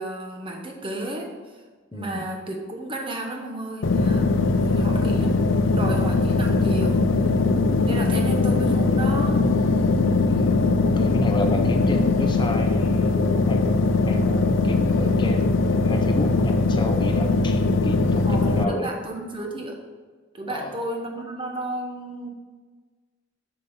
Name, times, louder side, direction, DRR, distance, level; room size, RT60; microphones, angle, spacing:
voice 1, 0.0-1.3 1.9-5.3 5.5-7.2 7.8-9.5 18.2-19.8 20.3-22.3, right 1 dB, 30° right, 1 dB, 1.1 m, -32 dB
voice 2, 1.9-2.2 4.7-5.0 10.3-18.9 20.5-20.7, left 1 dB, 25° left, 4 dB, 0.5 m, -32 dB
sound 1, 3.8-18.6, left 3 dB, 85° left, 0.5 m, -21 dB
7.6 x 5.4 x 5.5 m, 1.4 s
head